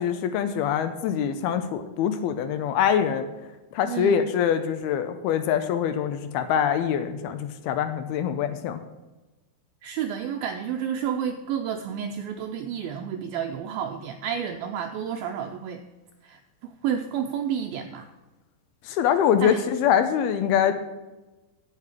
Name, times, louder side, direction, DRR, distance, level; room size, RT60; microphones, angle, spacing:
voice 1, 0.0-3.3 3.7-8.8 18.9-20.7, left 8 dB, 80° left, 10 dB, 2.4 m, -24 dB
voice 2, 3.8-4.2 9.8-15.8 16.2-18.1 19.4-19.6, right 8 dB, 80° right, 5 dB, 2.2 m, -30 dB
8.5 x 8.3 x 7.2 m, 1.1 s
omnidirectional pair, 4.8 m